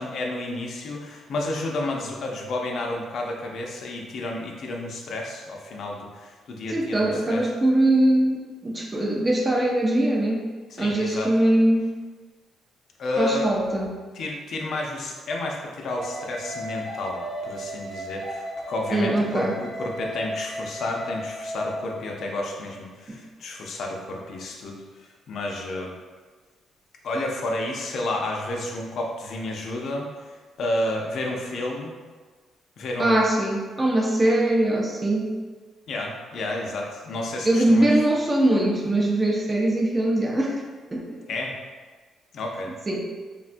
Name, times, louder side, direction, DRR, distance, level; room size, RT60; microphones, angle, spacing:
voice 1, 0.0-7.4 10.7-11.3 13.0-13.5 14.1-24.8 25.3-25.9 27.0-30.1 30.6-32.0 32.8-33.2 35.9-37.9 41.3-41.6 42.3-42.7, left 2 dB, 65° left, 0 dB, 0.4 m, -31 dB
voice 2, 6.7-10.5 10.8-11.9 13.2-13.9 18.9-19.5 23.1-23.2 33.0-35.3 37.4-40.6 40.9-41.2 42.9-43.1, right 1 dB, 25° right, 0 dB, 0.5 m, -22 dB
sound 1, 15.9-22.3, equal, 70° right, 1.2 m, -35 dB
3.5 x 2.2 x 2.5 m, 1.4 s
cardioid pair, 90°, 0 cm